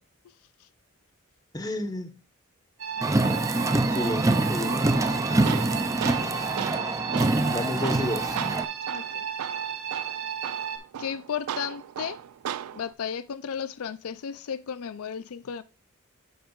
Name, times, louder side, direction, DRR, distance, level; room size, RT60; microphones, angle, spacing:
voice 1, 1.5-2.2 3.9-4.8 7.5-8.4, left 1 dB, 15° left, 1.1 m, -31 dB
sound 1, 2.8-10.8, right 8 dB, 70° right, 1.8 m, -34 dB
Car, 3.0-8.7, right 2 dB, 15° right, 0.5 m, -25 dB
voice 2, 4.7-5.1 8.9-9.3 11.0-12.2 12.7-15.6, left 7 dB, 80° left, 0.4 m, -34 dB
Tools, 4.9-12.9, right 9 dB, 90° right, 0.4 m, -36 dB
8.7 x 7.9 x 2.4 m
head